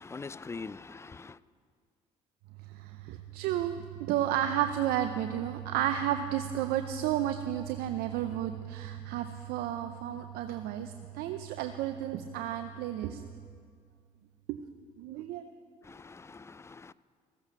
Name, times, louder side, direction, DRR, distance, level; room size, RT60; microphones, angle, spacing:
voice 1, 0.0-1.4 15.8-16.9, left 4 dB, 15° left, 0.4 m, -43 dB
voice 2, 3.1-3.8 4.1-13.2 14.5-14.6 15.0-15.4, right 11 dB, 75° right, 0.6 m, -32 dB
15.0 x 8.1 x 6.8 m
hypercardioid pair, 60°, 16 cm